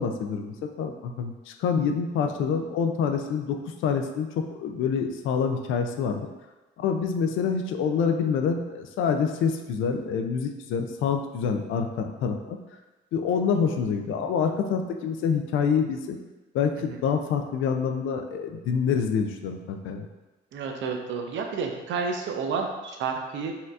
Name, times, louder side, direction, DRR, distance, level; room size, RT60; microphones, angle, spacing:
voice 1, 0.0-6.3 6.8-12.6 13.1-16.2 16.5-20.1, left 6 dB, 80° left, 5 dB, 0.4 m, -26 dB
voice 2, 20.5-23.5, right 5 dB, 70° right, 3 dB, 0.5 m, -30 dB
4.2 x 2.7 x 2.4 m, 1.1 s
cardioid pair, 90°, 20 cm